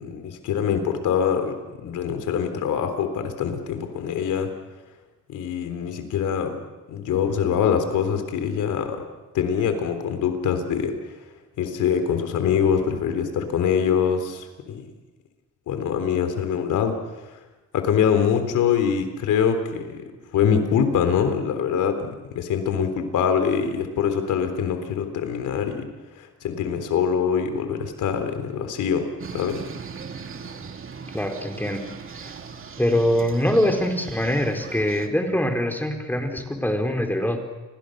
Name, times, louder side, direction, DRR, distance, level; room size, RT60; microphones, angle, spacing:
voice 1, 0.0-4.5 5.3-6.6 6.9-9.0 9.3-10.9 11.6-14.9 15.7-17.0 17.3-17.4 17.7-20.0 20.3-25.9 26.2-29.6, left 7 dB, 80° left, 8 dB, 3.8 m, -24 dB
sound 1, 29.2-35.1, right 5 dB, 45° right, 2.6 m, -39 dB
voice 2, 31.1-31.8 32.2-32.3 32.8-37.4, left 1 dB, 5° left, 4 dB, 4.2 m, -23 dB
29.5 x 22.0 x 6.7 m, 1.2 s
cardioid pair, 90°, 30 cm